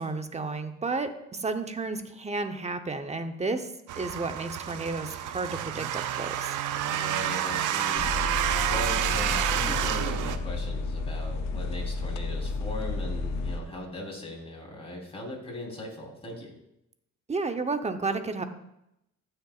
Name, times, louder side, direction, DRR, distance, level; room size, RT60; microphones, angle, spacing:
voice 1, 0.0-3.7 4.0-6.5 17.3-18.4, right 3 dB, 20° right, 7 dB, 0.9 m, -32 dB
sound 1, 3.9-10.4, right 11 dB, 85° right, 0.6 m, -29 dB
voice 2, 6.9-16.5, equal, 20° left, -1 dB, 3.7 m, -39 dB
sound 2, 8.0-13.6, left 3 dB, 65° left, 0.7 m, -32 dB
15.5 x 6.8 x 2.4 m, 0.82 s
cardioid pair, 90°, 30 cm